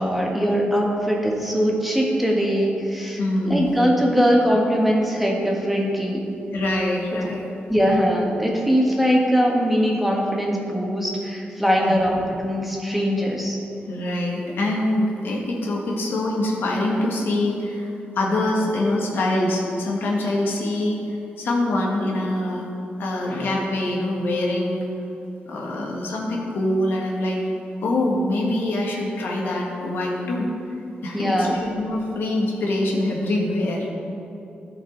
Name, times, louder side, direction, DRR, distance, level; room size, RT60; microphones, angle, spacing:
voice 1, 0.0-3.2 3.5-6.2 7.7-13.6 31.1-31.6, equal, 5° right, -2 dB, 1.6 m, -21 dB
voice 2, 3.2-3.8 6.5-7.4 11.8-12.0 13.9-21.0 21.4-22.7 23.0-24.8 25.5-27.4 27.8-30.5 31.0-33.9, left 1 dB, 85° left, -2 dB, 1.6 m, -24 dB
14.5 x 5.4 x 4.0 m, 2.8 s
cardioid pair, 100°, 4 cm